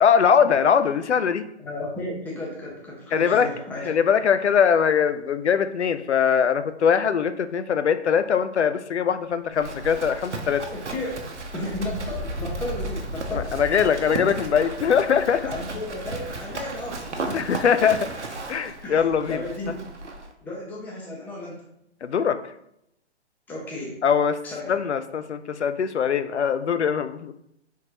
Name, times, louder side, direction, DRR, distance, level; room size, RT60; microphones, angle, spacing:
voice 1, 0.0-1.5 3.1-3.5 3.8-10.6 13.3-15.5 17.3-18.1 18.5-19.4 22.0-22.4 24.0-24.4 24.7-27.3, left 7 dB, 80° left, 11 dB, 0.5 m, -21 dB
voice 2, 1.6-3.9 10.9-11.2 11.5-13.5 15.4-17.5 18.8-19.8 20.4-21.6 23.5-24.0 24.4-24.8, left 1 dB, 5° left, -2 dB, 0.5 m, -34 dB
Livestock farm animals working animals, 9.5-20.3, right 3 dB, 85° right, 0.8 m, -35 dB
sound 1, 11.0-17.5 17.9-18.0 19.1-19.2 19.4-19.7, left 1 dB, 10° right, 1.1 m, -37 dB
4.7 x 3.6 x 2.8 m, 0.78 s
figure-of-eight pair, 125°, 34 cm